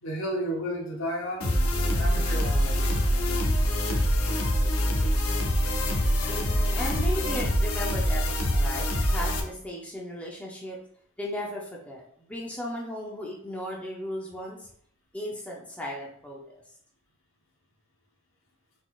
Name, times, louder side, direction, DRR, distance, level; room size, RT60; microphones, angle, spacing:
voice 1, 0.0-1.6 2.0-2.8, equal, 70° left, 0 dB, 1.0 m, -32 dB
sound 1, 1.4-9.4, equal, 85° left, 0.7 m, -25 dB
voice 2, 6.3-10.8 11.2-14.7 15.1-16.4, left 1 dB, 5° left, -3 dB, 0.6 m, -36 dB
4.0 x 3.8 x 2.4 m, 0.62 s
head